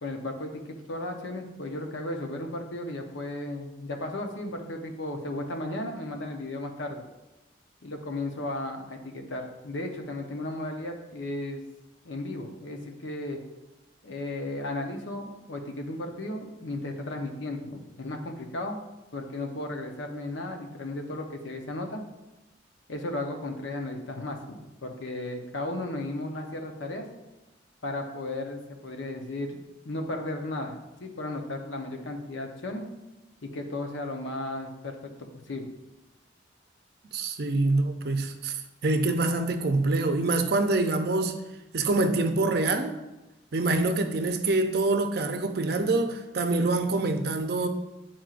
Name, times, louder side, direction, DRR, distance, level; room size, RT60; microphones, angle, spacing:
voice 1, 0.0-7.0 7.8-11.6 12.0-13.4 14.0-18.8 19.1-22.0 22.9-27.1 27.8-29.6 29.8-32.8 33.4-35.1 35.5-35.7 37.4-37.7, left 2 dB, 80° left, 0.8 m, -35 dB
voice 2, 37.1-38.6 38.8-41.3 41.7-43.0 43.5-47.7, right 2 dB, 55° right, 0.5 m, -25 dB
9.1 x 4.3 x 2.5 m
head